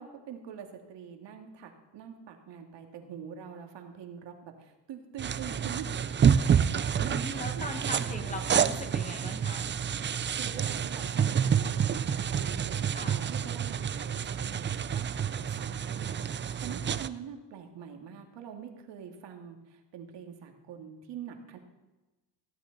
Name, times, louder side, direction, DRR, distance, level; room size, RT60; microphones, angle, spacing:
voice 1, 0.0-5.9 6.5-7.2 7.6-8.5 10.4-21.6, right 7 dB, 70° right, 4 dB, 2.1 m, -45 dB
sound 1, 5.2-17.1, right 8 dB, 25° right, 0.4 m, -28 dB
voice 2, 6.8-9.7 12.9-13.2, left 1 dB, 15° left, 6 dB, 1.5 m, -40 dB
16.0 x 12.5 x 4.0 m, 1.1 s
cardioid pair, 100°, 45 cm